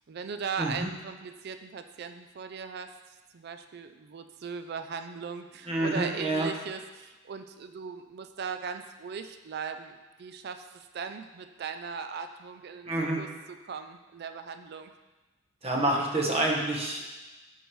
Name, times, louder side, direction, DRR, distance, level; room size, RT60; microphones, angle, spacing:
voice 1, 0.1-2.9 3.3-12.9 13.2-14.9, right 6 dB, 50° right, 8 dB, 0.4 m, -38 dB
voice 2, 0.6-0.9 5.7-6.5 12.9-13.2 15.6-17.0, right 2 dB, 30° right, -1 dB, 1.0 m, -27 dB
11.5 x 4.7 x 3.1 m, 1.2 s
head